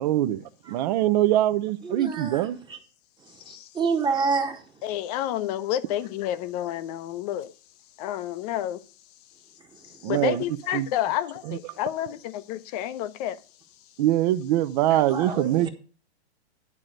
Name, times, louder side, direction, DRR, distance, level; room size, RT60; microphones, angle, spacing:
voice 1, 0.0-2.6 10.0-10.4 10.7-10.9 11.5-11.8 14.0-15.7, right 13 dB, 40° right, 0.7 m, -23 dB
voice 2, 1.9-2.4 3.7-4.6 15.1-15.7, right 5 dB, 15° right, 1.2 m, -27 dB
voice 3, 4.8-7.5 8.0-8.8 9.8-13.4 14.9-15.0, left 12 dB, 35° left, 0.7 m, -30 dB
11.0 x 3.8 x 7.6 m
hypercardioid pair, 125°, 34 cm